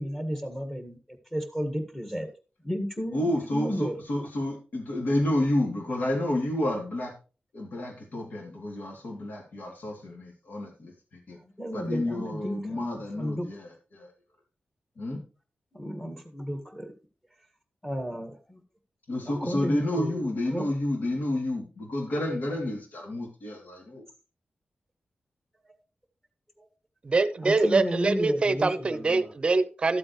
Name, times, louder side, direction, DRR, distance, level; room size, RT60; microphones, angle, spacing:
voice 1, 0.0-2.3 2.6-4.0 11.4-13.5 15.7-16.9 17.8-18.6 19.3-20.7 26.6-26.7 27.4-29.3, equal, 10° left, 1.7 m, -33 dB
voice 2, 3.1-7.1 7.5-10.9 11.3-11.4 11.7-13.7 13.9-14.1 15.0-15.2 19.1-24.0, left 1 dB, 65° left, 2.9 m, -30 dB
voice 3, 27.0-30.0, right 3 dB, 35° right, 0.7 m, -24 dB
13.0 x 7.8 x 3.1 m
wide cardioid pair, 150°, 3 cm